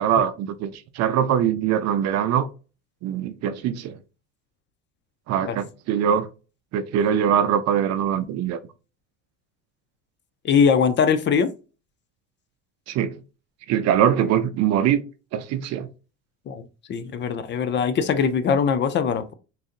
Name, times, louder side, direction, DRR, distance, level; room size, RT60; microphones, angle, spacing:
voice 1, 0.0-2.5 3.0-3.9 5.3-6.3 6.7-8.6 12.9-13.1 13.7-15.0 15.3-15.9, right 9 dB, 50° right, 0.5 m, -22 dB
voice 2, 10.4-11.5 16.5-16.6 16.9-19.3, left 6 dB, 35° left, 0.4 m, -21 dB
3.9 x 2.5 x 2.5 m
supercardioid pair, 115°, 34 cm